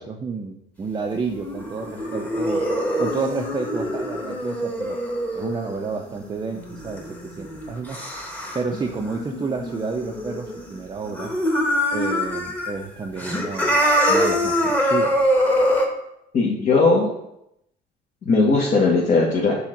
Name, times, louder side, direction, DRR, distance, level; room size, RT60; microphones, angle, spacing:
voice 1, 0.0-2.7 3.0-5.0 5.3-8.0 8.5-11.3 11.9-13.8 14.1-15.3, right 4 dB, 25° right, 1 dB, 0.6 m, -30 dB
sound 1, 1.1-10.8 11.0-12.7 13.0-15.9, equal, 10° left, 1.2 m, -24 dB
voice 2, 16.3-17.1 18.2-19.5, left 3 dB, 50° left, -4 dB, 1.5 m, -18 dB
5.8 x 3.9 x 5.8 m, 0.80 s
cardioid pair, 110°, 17 cm